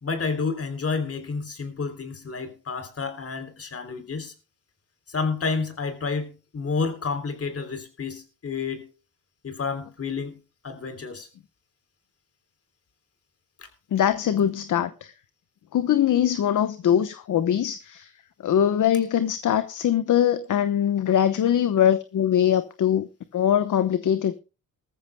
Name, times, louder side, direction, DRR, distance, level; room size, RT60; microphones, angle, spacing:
voice 1, 0.0-4.3 5.1-8.9 9.4-10.4 10.6-11.3 13.6-13.7, left 4 dB, 40° left, 3.3 m, -30 dB
voice 2, 13.9-15.1 15.7-18.1 18.4-23.1 23.3-24.4, left 10 dB, 55° left, 1.0 m, -22 dB
20.0 x 14.0 x 2.2 m
cardioid pair, 100°, 37 cm